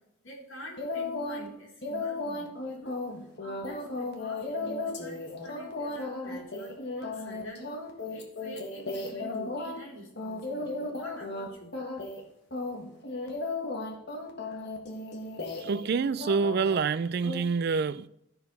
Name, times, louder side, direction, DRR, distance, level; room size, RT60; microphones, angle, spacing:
voice 1, 0.2-3.0 3.4-7.6 8.1-11.7, equal, 70° left, 3.7 m, -46 dB
sound 1, 0.8-1.5 1.8-9.8 10.2-11.5 11.7-12.2 12.5-15.9 16.2-16.8 17.2-17.4, left 2 dB, 50° left, 1.5 m, -35 dB
voice 2, 15.6-18.1, right 5 dB, 50° right, 0.3 m, -27 dB
13.5 x 4.7 x 5.4 m
head